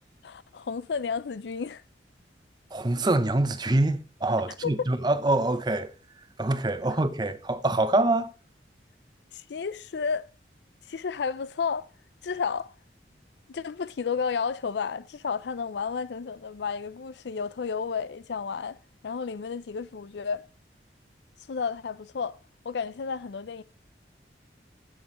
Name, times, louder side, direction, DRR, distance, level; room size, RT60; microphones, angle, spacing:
voice 1, 0.2-1.8 4.6-4.9 9.3-10.3 10.9-11.9 12.2-12.7 13.5-18.8 19.0-20.4 21.5-22.4 22.6-23.6, left 5 dB, 70° left, 0.4 m, -32 dB
voice 2, 2.7-5.9 6.4-8.3, right 2 dB, 25° right, 0.7 m, -25 dB
15.5 x 6.2 x 3.1 m
head